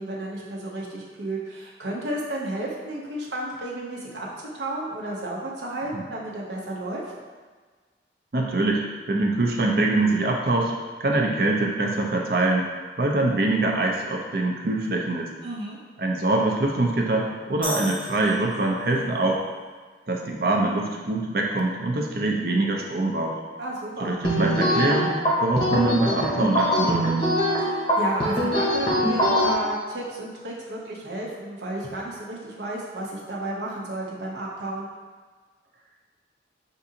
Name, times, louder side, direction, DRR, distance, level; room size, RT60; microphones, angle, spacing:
voice 1, 0.0-7.0 15.4-15.8 23.6-24.2 27.6-34.9, right 1 dB, 80° right, -3 dB, 0.8 m, -32 dB
voice 2, 8.3-10.7 11.0-12.7 13.0-15.3 16.0-19.4 20.1-23.4 24.0-25.1 25.4-27.2, right 2 dB, 55° right, 0 dB, 0.5 m, -24 dB
sound 1, 17.6-19.0, left 1 dB, 5° right, 1.0 m, -35 dB
sound 2, 24.2-29.5, equal, 30° left, 0.7 m, -23 dB
6.0 x 2.6 x 2.7 m, 1.4 s
head